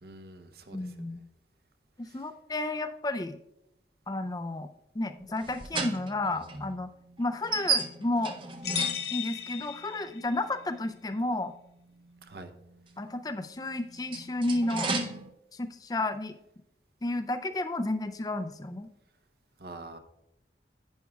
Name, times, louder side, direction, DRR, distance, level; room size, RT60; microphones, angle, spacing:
voice 1, 0.0-1.1 2.0-2.2 12.2-12.5 19.6-20.0, right 2 dB, 60° right, 8 dB, 0.8 m, -46 dB
voice 2, 0.7-1.2 2.0-3.4 4.1-4.7 4.9-6.9 7.2-8.4 9.1-11.5 13.0-14.9 15.5-16.4 17.0-18.9, left 2 dB, 20° left, 10 dB, 0.4 m, -32 dB
sound 1, 5.2-9.5 10.8-10.9 13.7-15.3, right 4 dB, 30° right, 0.6 m, -33 dB
sound 2, 8.6-10.5, left 10 dB, 65° left, 0.8 m, -35 dB
10.5 x 9.3 x 2.3 m, 0.88 s
head